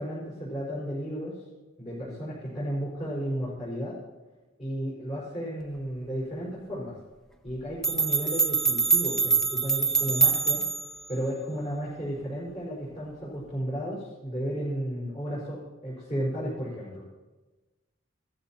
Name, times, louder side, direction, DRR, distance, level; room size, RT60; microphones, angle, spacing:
voice 1, 0.0-1.4 1.8-4.0 4.6-6.9 7.4-10.6 11.1-17.0, equal, 35° left, -9 dB, 4.8 m, -33 dB
sound 1, 7.5-7.6 7.8-11.0, right 4 dB, 5° left, 0.8 m, -24 dB
17.0 x 14.5 x 2.9 m, 1.2 s
head